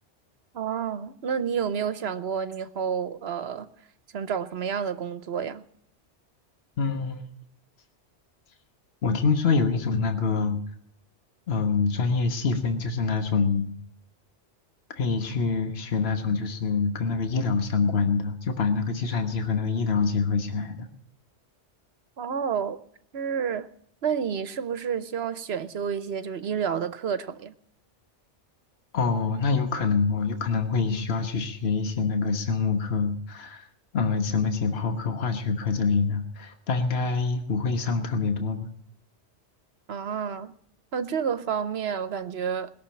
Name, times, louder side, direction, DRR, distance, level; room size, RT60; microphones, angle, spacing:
voice 1, 0.5-3.7 4.1-5.6 22.2-22.8 23.1-23.7 24.0-27.5 39.9-40.5 40.9-42.7, right 7 dB, 65° right, 1.0 m, -29 dB
voice 2, 6.8-7.2 9.0-10.6 11.5-13.7 15.0-20.9 28.9-33.7 33.9-38.7, left 4 dB, 60° left, 1.5 m, -25 dB
21.0 x 7.0 x 8.8 m
omnidirectional pair, 1.2 m